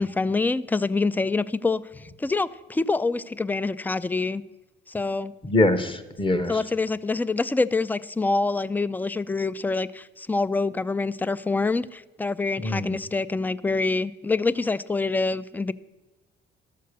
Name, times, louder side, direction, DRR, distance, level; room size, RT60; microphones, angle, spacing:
voice 1, 0.0-1.8 2.2-4.4 4.9-5.3 6.5-15.7, left 3 dB, 10° left, 18 dB, 0.3 m, -26 dB
voice 2, 5.4-6.6 12.6-13.0, left 2 dB, 25° left, 12 dB, 0.9 m, -23 dB
12.0 x 6.6 x 6.6 m, 1.2 s
cardioid pair, 90°, 20 cm